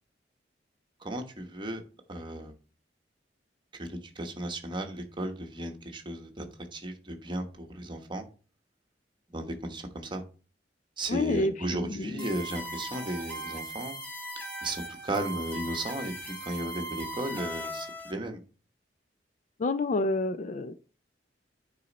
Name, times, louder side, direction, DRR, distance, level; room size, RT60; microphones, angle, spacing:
voice 1, 1.0-1.8 2.1-2.5 3.7-6.5 6.7-8.2 9.3-10.2 11.0-13.9 14.6-18.4, right 1 dB, 25° right, 1.1 m, -35 dB
voice 2, 11.1-12.3 19.6-20.7, left 2 dB, 45° left, 0.4 m, -29 dB
sound 1, 12.2-18.1, right 1 dB, 10° left, 1.7 m, -39 dB
9.4 x 4.2 x 4.1 m
head